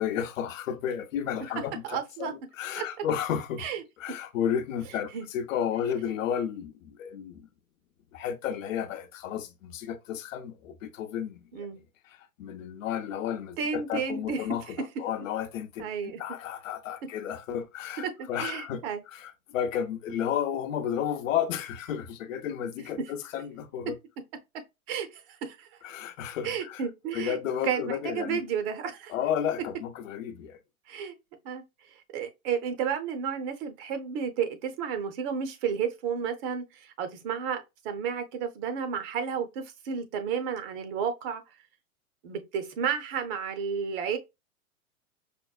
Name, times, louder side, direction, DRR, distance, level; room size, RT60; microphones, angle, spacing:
voice 1, 0.0-3.7 4.0-7.5 8.1-11.7 12.1-15.9 16.2-18.8 19.1-24.0 25.8-26.8 27.1-28.4 29.1-30.6, left 9 dB, 65° left, 0.8 m, -32 dB
voice 2, 1.8-2.3 2.8-2.9 3.6-3.8 5.1-5.3 11.5-11.8 13.6-14.5 14.8-14.9 15.8-16.2 18.0-19.0 20.1-20.2 24.9-25.7 26.4-27.4 27.6-29.1 30.9-31.1 31.4-31.6 32.1-41.4 42.2-44.2, right 7 dB, 40° right, 0.8 m, -32 dB
5.2 x 2.1 x 2.4 m
hypercardioid pair, 115°, 43 cm